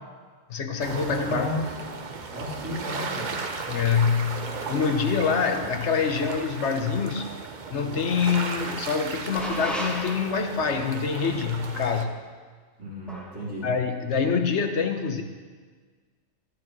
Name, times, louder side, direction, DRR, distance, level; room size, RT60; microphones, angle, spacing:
voice 1, 0.5-1.5 3.7-7.3 7.7-12.1 13.6-15.2, left 6 dB, 60° left, 6 dB, 1.2 m, -25 dB
sound 1, 0.8-12.0, right 4 dB, 40° right, 0.8 m, -36 dB
voice 2, 1.3-1.6 2.3-3.4 12.8-13.7, left 1 dB, 80° right, -9 dB, 4.2 m, -33 dB
sound 2, 9.3-10.7 13.1-13.4, equal, ahead, 1.4 m, -33 dB
14.5 x 12.5 x 3.1 m, 1.5 s
omnidirectional pair, 1.4 m